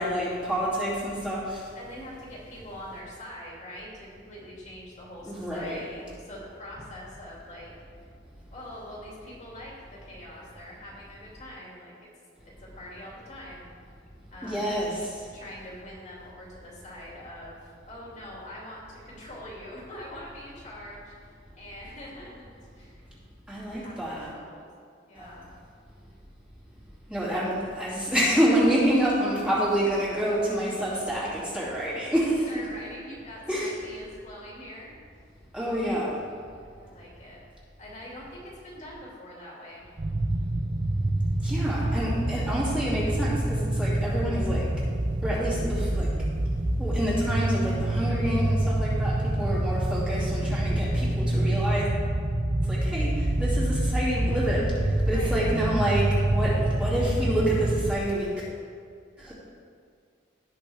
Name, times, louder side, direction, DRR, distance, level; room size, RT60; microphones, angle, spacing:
voice 1, 0.0-1.6 5.2-5.9 14.4-15.1 23.5-24.3 25.2-25.3 27.1-32.5 33.5-33.8 35.5-36.1 41.4-44.7 45.2-46.1 46.8-51.9 52.6-54.7 55.1-58.4 59.2-59.3, equal, 5° right, -9 dB, 2.6 m, -28 dB
voice 2, 1.7-7.7 8.5-9.7 10.0-12.1 12.4-13.7 14.3-14.9 15.3-23.0 23.7-24.7 25.1-25.5 32.2-35.0 36.7-37.4 37.8-39.9 55.0-55.5, left 1 dB, 40° left, -5 dB, 2.6 m, -44 dB
sound 1, 40.0-57.9, right 1 dB, 40° right, 0.8 m, -26 dB
17.0 x 6.1 x 3.5 m, 2.2 s
head